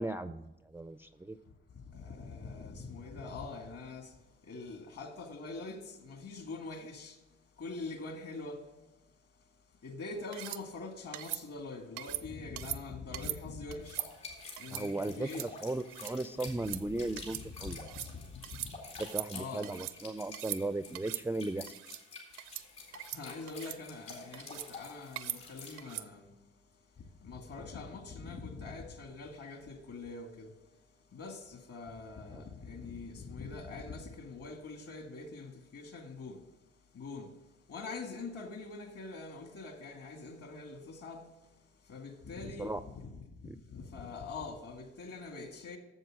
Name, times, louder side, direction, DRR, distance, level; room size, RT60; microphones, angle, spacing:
voice 1, 0.0-1.4 14.7-17.9 19.0-21.7 32.3-32.4 42.6-42.8 43.4-43.6, right 2 dB, 10° right, 0.4 m, -37 dB
voice 2, 1.9-4.1 4.5-7.1 7.6-8.6 9.8-14.0 14.6-15.4 17.6-17.8 18.1-18.2 19.3-19.7 23.1-26.3 27.2-30.5 31.1-36.4 36.9-37.3 37.7-41.2 41.9-43.1 43.7-45.8, left 3 dB, 55° left, 2.0 m, -44 dB
sound 1, 10.3-10.6 11.1-11.4 12.0-12.2 12.6-12.8 13.1-13.4 13.7-14.1 14.6-14.8 15.2-15.5 15.8-16.1 16.5-16.8 17.2-17.4 17.7-18.1 18.4-18.7 19.0-20.0 20.3-20.6 20.9-21.2 21.7-22.0 22.4-22.6 22.9-23.2 23.5-23.8 24.3-24.7 25.2-25.4 25.8-26.1, right 15 dB, 75° right, 0.5 m, -40 dB
sound 2, 13.8-25.8, left 3 dB, 85° left, 2.6 m, -49 dB
7.9 x 7.2 x 6.3 m
hypercardioid pair, 50°, 29 cm